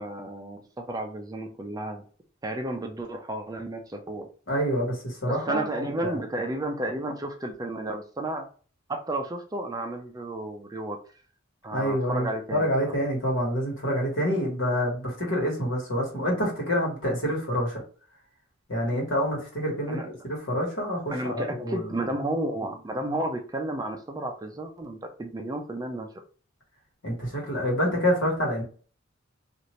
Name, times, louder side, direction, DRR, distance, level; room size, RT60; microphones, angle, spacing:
voice 1, 0.0-2.0 2.4-4.3 5.2-8.5 8.9-11.0 11.6-13.0 19.9-20.1 21.1-26.1, right 1 dB, 20° right, 4 dB, 0.4 m, -32 dB
voice 2, 4.5-6.2 11.7-17.8 18.7-22.0 27.0-28.6, equal, 70° left, -2 dB, 1.5 m, -27 dB
2.7 x 2.5 x 3.1 m, 0.40 s
head